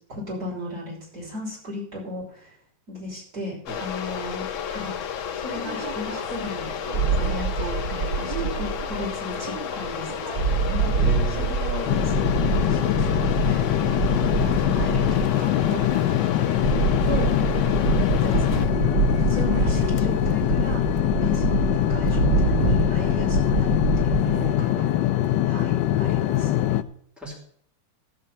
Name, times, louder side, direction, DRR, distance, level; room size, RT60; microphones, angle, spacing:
voice 1, 0.1-2.5 2.9-5.0 5.4-10.9 11.4-17.7 17.9-20.8 21.1-24.8 25.4-26.6, left 2 dB, 50° right, -6 dB, 6.5 m, -35 dB
sound 1, 3.7-18.7, left 8 dB, 60° left, 0.8 m, -32 dB
sound 2, 5.5-24.5, right 5 dB, 70° right, 1.8 m, -26 dB
voice 2, 11.0-11.5 24.2-25.1 27.2-27.4, right 1 dB, ahead, -2 dB, 4.3 m, -35 dB
sound 3, 11.9-26.8, left 13 dB, 75° left, 1.2 m, -23 dB
14.5 x 5.7 x 7.2 m, 0.64 s
omnidirectional pair, 2.1 m